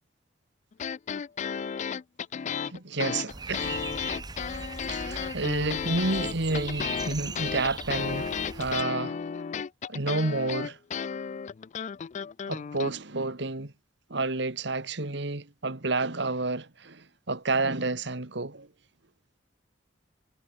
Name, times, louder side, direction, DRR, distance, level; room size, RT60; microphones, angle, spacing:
sound 1, 0.7-12.9, left 7 dB, 40° left, 0.3 m, -33 dB
voice 1, 2.7-3.9 4.9-9.2 9.9-10.8 12.5-13.7 14.1-18.7, right 3 dB, 65° right, 2.0 m, -30 dB
sound 2, 3.3-8.8, right 3 dB, 20° right, 1.2 m, -39 dB
head